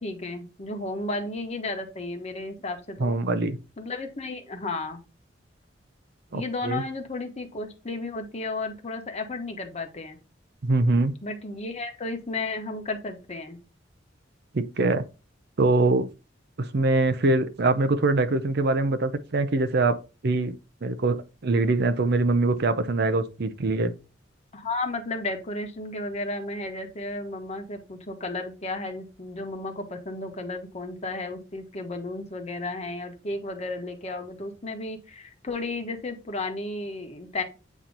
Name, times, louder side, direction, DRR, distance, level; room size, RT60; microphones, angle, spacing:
voice 1, 0.0-3.2 3.8-5.0 6.3-10.2 11.2-13.6 24.5-37.4, left 2 dB, 35° left, 1.2 m, -33 dB
voice 2, 3.0-3.6 6.3-6.8 10.6-11.1 14.5-15.0 15.6-16.1 16.6-20.0 20.2-20.5 20.8-23.9, right 2 dB, 60° right, 0.6 m, -23 dB
8.3 x 2.9 x 3.8 m
head